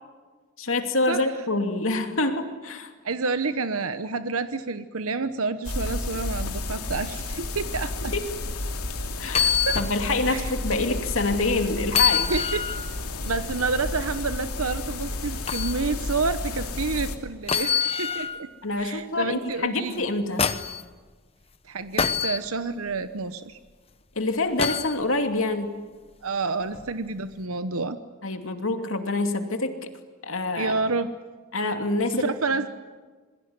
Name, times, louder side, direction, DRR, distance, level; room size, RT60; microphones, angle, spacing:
voice 1, 0.6-2.9 8.1-8.2 9.2-12.3 18.6-20.5 24.1-25.7 28.2-29.9 30.2-30.7 31.5-32.3, left 2 dB, 65° left, 6 dB, 2.7 m, -26 dB
voice 2, 3.0-8.1 9.3-9.8 10.2-10.5 12.3-12.6 13.2-18.5 18.8-20.1 21.6-23.6 26.2-28.0 30.6-31.1 32.1-32.7, right 4 dB, 75° right, 10 dB, 1.0 m, -29 dB
sound 1, 5.6-17.2, left 2 dB, 90° left, 2.8 m, -32 dB
sound 2, 9.3-9.9 10.4-10.5 11.9-12.9 15.5-15.7 17.5-18.4 19.9-20.8 22.0-22.4 24.6-25.0 26.7-26.9, left 7 dB, 25° left, 1.0 m, -25 dB
27.0 x 22.0 x 9.6 m, 1.4 s
head